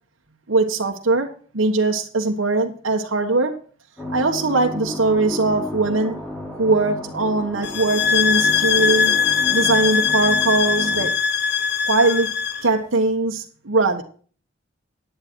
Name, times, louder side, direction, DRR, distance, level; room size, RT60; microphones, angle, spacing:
voice 1, 0.5-1.3 1.5-3.5 4.1-6.1 6.5-9.1 9.5-11.1 11.8-12.3 12.6-14.0, right 3 dB, 90° right, 2 dB, 1.3 m, -20 dB
sound 1, 4.0-11.1, left 1 dB, 10° left, 2.6 m, -33 dB
sound 2, 7.6-12.7, left 6 dB, 55° left, 0.9 m, -21 dB
10.5 x 9.4 x 4.5 m, 0.42 s
head